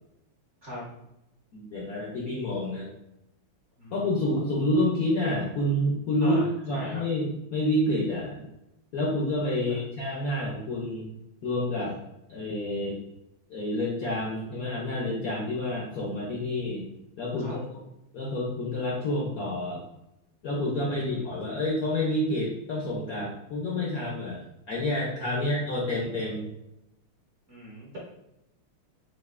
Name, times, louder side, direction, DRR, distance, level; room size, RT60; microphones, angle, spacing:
voice 1, 1.5-2.9 3.9-6.4 6.6-8.4 8.9-11.1 11.4-12.0 12.3-13.0 13.5-16.9 17.2-17.6 18.1-19.8 20.4-26.5, left 1 dB, 60° left, -4 dB, 0.9 m, -28 dB
voice 2, 3.8-4.2 6.2-7.0 9.7-9.8 17.4-17.6 20.9-21.4 25.3-25.6 27.5-28.0, left 1 dB, 45° right, -6 dB, 1.1 m, -40 dB
6.3 x 2.6 x 2.5 m, 0.88 s
omnidirectional pair, 2.4 m